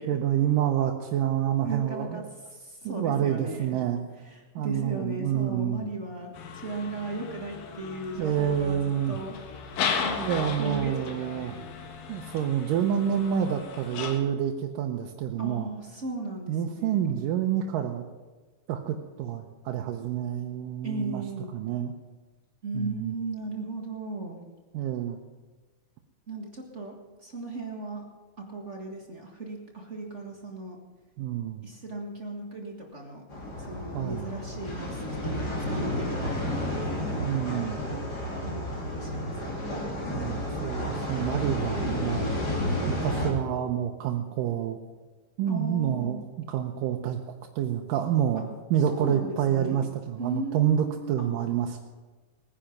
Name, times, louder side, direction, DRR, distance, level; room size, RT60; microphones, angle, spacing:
voice 1, 0.0-2.3 2.9-4.0 4.6-5.9 8.2-9.2 10.2-11.6 12.1-15.7 16.5-18.0 18.7-21.2 21.5-21.9 22.7-23.2 24.7-25.2 31.2-31.6 33.9-34.3 37.2-37.8 40.1-42.3 42.9-44.8 45.4-47.2 47.6-51.8, right 10 dB, 85° right, 2 dB, 2.5 m, -28 dB
voice 2, 1.6-2.2 2.8-3.8 4.2-8.8 9.1-9.4 10.0-11.6 15.4-17.0 20.8-21.5 22.6-24.4 26.3-28.0 28.5-30.8 31.6-33.2 33.7-35.0 35.3-37.1 38.4-39.8 45.5-46.1 48.3-48.4 48.9-49.8 50.2-51.3, right 2 dB, 35° right, 0 dB, 1.2 m, -36 dB
sound 1, 6.3-14.2, left 6 dB, 80° left, 3.0 m, -36 dB
sound 2, 33.3-43.3, left 1 dB, 30° left, 3.1 m, -31 dB
20.0 x 10.0 x 5.9 m, 1.3 s
omnidirectional pair, 3.8 m